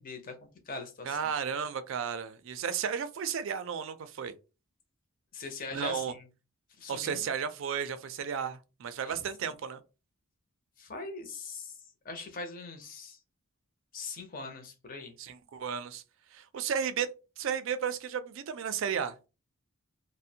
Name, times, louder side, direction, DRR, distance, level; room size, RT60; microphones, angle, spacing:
voice 1, 0.0-1.2 5.3-6.2 6.8-7.3 9.0-9.5 10.8-11.8 12.0-13.2 13.9-15.1, left 3 dB, 40° left, 0.5 m, -42 dB
voice 2, 1.0-4.3 5.7-6.1 6.9-9.8 15.2-16.0 16.3-17.1 17.4-19.1, right 7 dB, 60° right, 0.3 m, -33 dB
2.5 x 2.0 x 2.6 m
head